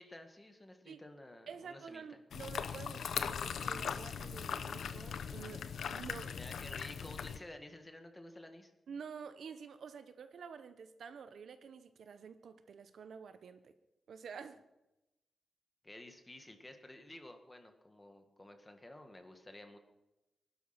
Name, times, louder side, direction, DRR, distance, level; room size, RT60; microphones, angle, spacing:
voice 1, 0.0-2.2 6.3-8.7 15.8-19.8, left 1 dB, 15° left, 1.7 m, -52 dB
voice 2, 1.5-6.4 8.9-13.7 14.1-14.6, right 6 dB, 80° right, 1.0 m, -49 dB
sound 1, 2.3-7.4, left 7 dB, 90° left, 0.8 m, -40 dB
19.5 x 12.0 x 5.9 m
wide cardioid pair, 135°, 0 cm